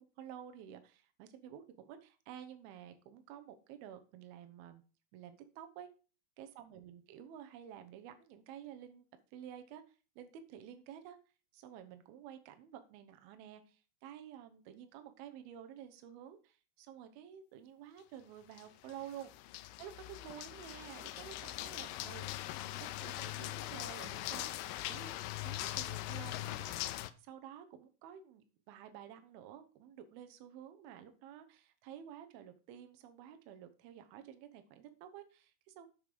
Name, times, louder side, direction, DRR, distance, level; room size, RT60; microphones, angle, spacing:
voice 1, 0.0-4.8 5.1-5.9 6.4-9.1 9.3-11.2 11.5-19.3 19.8-22.3 23.0-25.1 25.4-35.9, right 9 dB, 90° right, 7 dB, 2.1 m, -51 dB
sound 1, 18.5-27.1, left 15 dB, 85° left, 3.0 m, -41 dB
8.0 x 6.9 x 5.1 m, 0.35 s
omnidirectional pair, 5.8 m